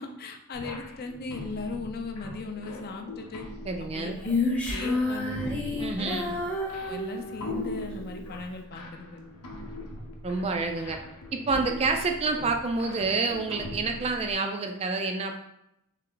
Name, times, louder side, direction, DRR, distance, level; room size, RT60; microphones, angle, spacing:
voice 1, 0.0-3.5 3.8-4.3 4.7-5.5 6.0-9.2, left 3 dB, 45° left, 4 dB, 0.5 m, -38 dB
sound 1, 0.5-14.3, left 1 dB, 85° left, 0.7 m, -41 dB
voice 2, 3.6-4.2 5.8-6.3 10.2-11.0 11.3-15.3, right 3 dB, 25° right, 4 dB, 0.3 m, -28 dB
Female singing, 4.2-7.7, left 2 dB, 5° left, 0.7 m, -30 dB
3.3 x 3.3 x 3.7 m, 0.82 s
head